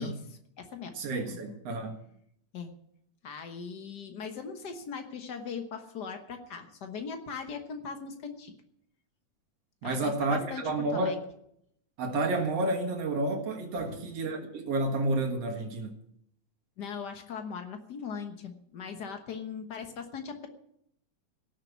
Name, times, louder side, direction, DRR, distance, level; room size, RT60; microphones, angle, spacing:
voice 1, 0.0-1.0 1.3-1.6 2.5-2.7 3.2-8.5 9.8-11.2 13.8-14.0 16.8-20.5, left 6 dB, 70° left, 0.9 m, -40 dB
voice 2, 1.0-2.0 9.8-11.2 12.0-15.9, right 2 dB, 55° right, 2.5 m, -30 dB
17.5 x 6.7 x 8.1 m
omnidirectional pair, 3.8 m